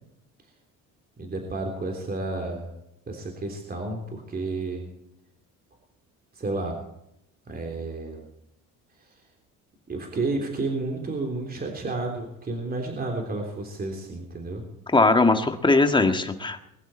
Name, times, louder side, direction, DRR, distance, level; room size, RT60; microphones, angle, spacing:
voice 1, 1.2-2.7 3.1-4.9 6.3-6.8 7.5-8.2 9.9-14.6, right 2 dB, 25° right, 2 dB, 3.5 m, -31 dB
voice 2, 14.9-16.6, left 3 dB, 15° left, 6 dB, 1.7 m, -20 dB
21.5 x 11.5 x 4.4 m, 0.81 s
cardioid pair, 115°, 34 cm